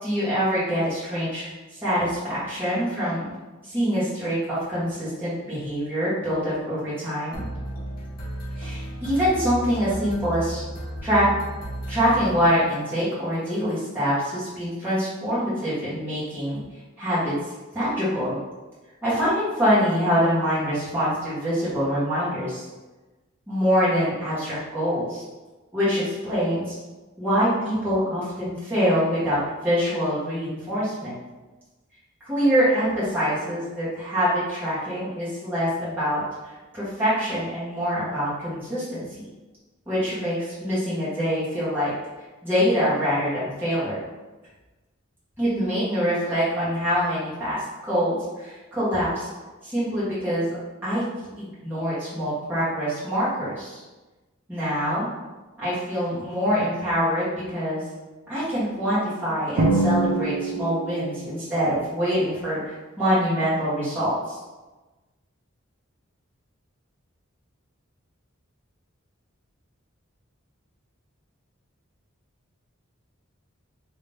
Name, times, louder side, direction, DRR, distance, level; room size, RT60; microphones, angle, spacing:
voice 1, 0.0-3.3 3.6-7.4 8.6-10.6 11.0-11.2 11.9-16.6 17.0-17.3 17.7-18.4 19.0-22.6 23.5-25.2 25.7-26.7 27.2-31.1 32.2-36.2 36.7-39.3 39.9-41.9 42.4-44.0 45.4-47.6 47.9-49.3 49.6-50.6 50.8-51.0 51.4-53.8 54.5-55.1 55.6-57.8 58.3-64.4, equal, 10° right, -12 dB, 1.4 m, -25 dB
sound 1, 7.3-13.0, equal, 45° left, 0.8 m, -34 dB
Drum, 59.6-61.3, right 2 dB, 70° right, 0.6 m, -24 dB
3.1 x 2.7 x 3.4 m, 1.2 s
head